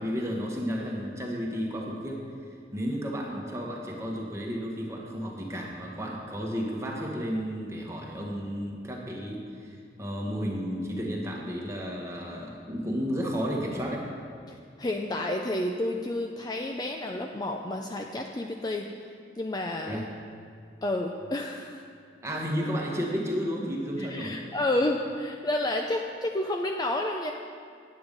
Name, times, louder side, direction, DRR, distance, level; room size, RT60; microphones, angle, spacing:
voice 1, 0.0-2.2 2.7-14.0 19.9-20.0 22.2-24.4, equal, 15° right, -2 dB, 1.4 m, -32 dB
voice 2, 14.8-18.9 19.4-20.0 20.8-21.8 24.0-27.3, left 1 dB, 20° left, 2 dB, 0.4 m, -30 dB
9.2 x 8.7 x 5.2 m, 2.3 s
head